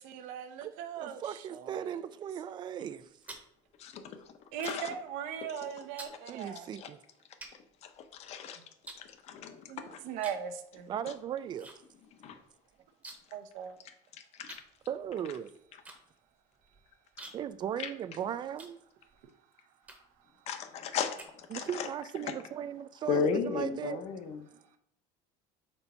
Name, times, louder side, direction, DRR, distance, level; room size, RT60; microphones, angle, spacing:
voice 1, 0.0-2.1 4.5-6.7 9.7-10.9 13.3-13.8, right 8 dB, 75° right, 0.8 m, -39 dB
voice 2, 1.0-3.1 6.3-7.0 10.9-11.7 14.9-15.5 17.3-18.8 21.5-24.0, right 9 dB, 35° right, 0.3 m, -37 dB
sound 1, 2.9-5.0 5.3-5.6 6.0-6.2 6.8-6.9 7.4-8.4 8.8-9.7 10.2-10.5 10.8-11.8 12.0-12.1 12.4-13.4 13.7-13.8 14.5-19.2 19.8-20.3 20.7-21.8, right 2 dB, 10° right, 0.9 m, -50 dB
voice 3, 3.8-4.3 4.6-4.9 6.8-6.9 7.8-8.6 9.0-10.0 12.2-12.4 14.3-14.6 17.2-17.3 17.8-17.9 20.5-21.9 23.1-24.4, left 6 dB, 50° left, 0.8 m, -35 dB
4.4 x 4.0 x 5.5 m
cardioid pair, 140°, 14 cm